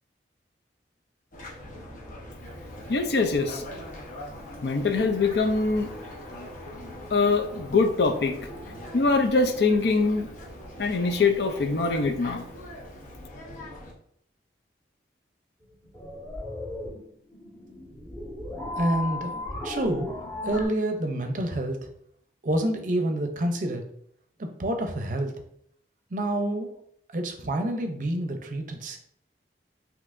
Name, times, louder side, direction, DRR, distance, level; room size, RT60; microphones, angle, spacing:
sound 1, 1.3-13.9, left 1 dB, 45° left, 0.9 m, -41 dB
voice 1, 2.9-3.6 4.6-5.9 7.1-8.3 8.9-10.3 10.8-12.4, left 3 dB, 65° left, 5 dB, 0.5 m, -23 dB
sound 2, 15.6-20.7, left 2 dB, 15° left, 1.3 m, -35 dB
voice 2, 18.8-20.1 20.4-21.8 22.4-23.8 24.6-25.3 26.1-26.7 27.1-29.0, right 1 dB, 45° right, 5 dB, 0.6 m, -28 dB
5.6 x 2.9 x 2.5 m, 0.69 s
head